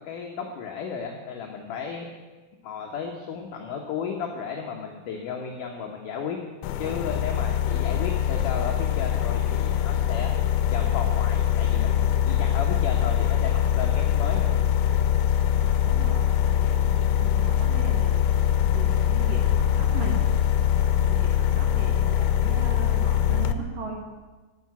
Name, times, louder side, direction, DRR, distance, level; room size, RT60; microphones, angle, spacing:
voice 1, 0.0-2.1 2.6-6.4 6.8-10.3 10.7-14.6, left 6 dB, 65° left, 1 dB, 2.2 m, -34 dB
sound 1, 6.6-23.5, left 9 dB, 85° left, 2.5 m, -23 dB
voice 2, 15.6-20.2 20.6-24.0, right 4 dB, 60° right, -1 dB, 3.4 m, -38 dB
12.0 x 7.0 x 9.4 m, 1.3 s
omnidirectional pair, 4.6 m